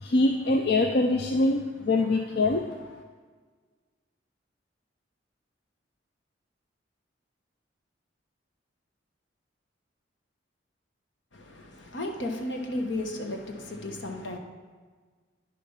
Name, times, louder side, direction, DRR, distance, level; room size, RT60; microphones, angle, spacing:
voice 1, 0.0-2.6, left 2 dB, 55° left, 0.5 m, -24 dB
voice 2, 11.3-14.4, left 1 dB, 75° left, 1.2 m, -34 dB
9.5 x 6.9 x 5.7 m
head